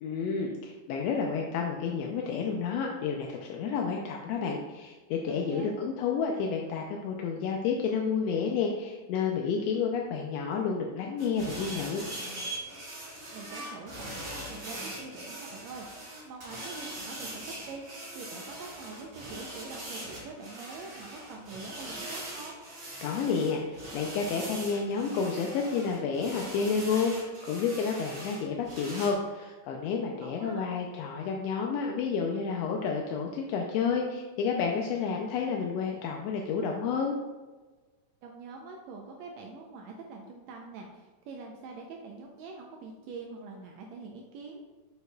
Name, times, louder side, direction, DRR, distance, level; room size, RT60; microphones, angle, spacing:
voice 1, 0.0-12.0 23.0-37.2, left 5 dB, 80° left, 1 dB, 1.5 m, -30 dB
voice 2, 5.3-5.7 13.3-22.6 30.2-30.7 38.2-44.6, right 4 dB, 80° right, 1 dB, 1.8 m, -44 dB
sound 1, 11.2-29.1, right 1 dB, 45° right, 2.6 m, -41 dB
6.8 x 6.6 x 2.3 m, 1.3 s
omnidirectional pair, 3.3 m